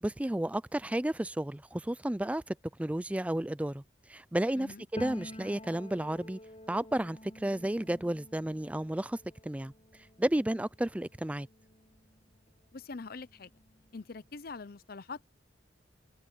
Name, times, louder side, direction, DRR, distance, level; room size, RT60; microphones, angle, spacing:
voice 1, 0.0-3.8 4.1-6.4 6.7-9.2 9.4-9.7 10.2-11.5, right 1 dB, 5° right, 0.4 m, -32 dB
Piano, 5.0-12.6 12.9-14.5, left 1 dB, 30° left, 7.9 m, -49 dB
voice 2, 12.7-13.5 13.9-15.2, left 4 dB, 50° left, 0.7 m, -43 dB
head